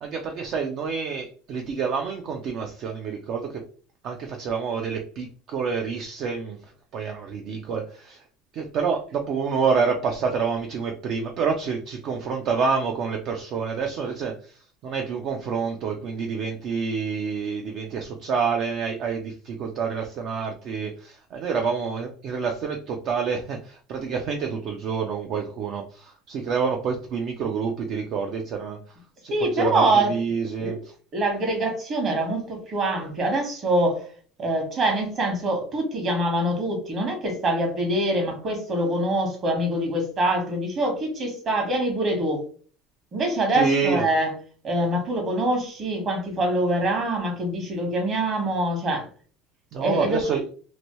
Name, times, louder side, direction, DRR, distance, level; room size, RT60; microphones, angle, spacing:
voice 1, 0.0-3.6 4.0-8.2 8.5-29.0 29.2-31.0 43.5-44.0 49.7-50.4, right 5 dB, 50° right, 3 dB, 0.5 m, -28 dB
voice 2, 29.3-30.1 30.6-30.8 31.1-34.0 34.4-42.4 43.1-44.3 44.6-49.1 49.8-50.2, right 1 dB, 35° right, 3 dB, 1.2 m, -24 dB
2.9 x 2.6 x 3.0 m, 0.42 s
supercardioid pair, 125°, 0 cm